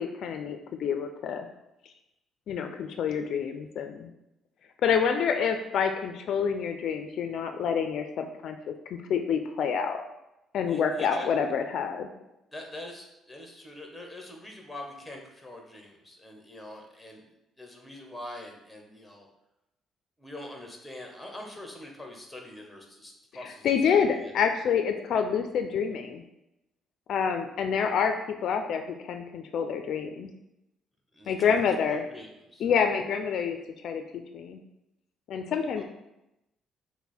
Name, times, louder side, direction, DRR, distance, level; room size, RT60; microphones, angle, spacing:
voice 1, 0.0-1.5 2.5-4.1 4.8-10.0 10.5-12.1 23.4-26.2 27.1-30.3 31.3-32.1 32.6-33.6 33.8-34.0 34.3-34.6 35.3-35.8, left 7 dB, 60° left, 6 dB, 0.3 m, -27 dB
voice 2, 10.7-11.3 12.5-19.3 20.2-24.3 31.1-32.7 35.8-35.9, left 1 dB, 5° left, 2 dB, 0.8 m, -44 dB
5.7 x 2.1 x 4.2 m, 0.89 s
cardioid pair, 135°, 0 cm